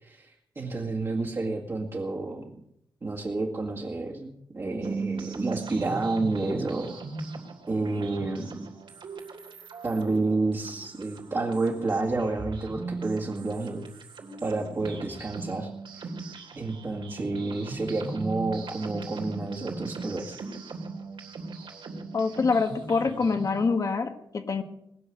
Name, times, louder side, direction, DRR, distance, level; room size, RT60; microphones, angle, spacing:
voice 1, 0.0-2.7 3.0-7.0 7.7-8.7 9.8-13.8 14.4-16.1 16.6-20.4, right 3 dB, 35° right, -4 dB, 2.0 m, -30 dB
sound 1, 4.8-23.7, right 4 dB, 80° right, 3.3 m, -39 dB
sound 2, 5.8-9.1, right 5 dB, 60° right, 1.7 m, -46 dB
voice 2, 22.1-24.6, left 4 dB, 45° left, 7 dB, 1.5 m, -25 dB
20.5 x 7.1 x 9.9 m, 0.77 s
wide cardioid pair, 165°, 8 cm